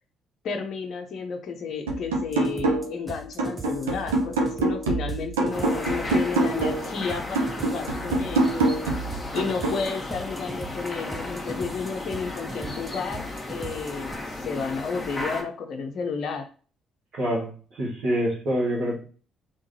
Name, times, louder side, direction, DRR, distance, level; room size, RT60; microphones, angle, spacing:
voice 1, 0.4-8.7 9.1-16.5, left 5 dB, 55° left, 4 dB, 0.6 m, -32 dB
sound 1, 1.9-3.0 3.4-6.9 7.4-9.9, right 2 dB, 80° right, 0.7 m, -26 dB
sound 2, 2.3-14.1, right 2 dB, 25° right, 0.7 m, -40 dB
sound 3, 5.5-15.4, left 2 dB, 20° left, 1.2 m, -35 dB
voice 2, 17.1-19.0, equal, 60° right, -8 dB, 1.6 m, -26 dB
3.6 x 3.3 x 2.7 m, 0.39 s
figure-of-eight pair, 45°, 0 cm